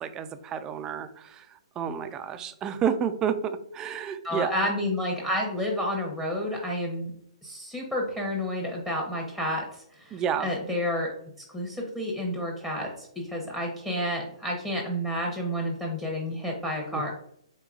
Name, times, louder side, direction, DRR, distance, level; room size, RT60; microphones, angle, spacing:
voice 1, 0.0-4.6 10.1-10.5 16.9-17.1, right 7 dB, 20° right, 10 dB, 0.3 m, -30 dB
voice 2, 4.2-7.1 7.4-9.6 10.0-11.1 11.5-17.1, left 1 dB, 5° left, 0 dB, 0.8 m, -30 dB
4.6 x 3.6 x 2.4 m, 0.69 s
hypercardioid pair, 140°, 3 cm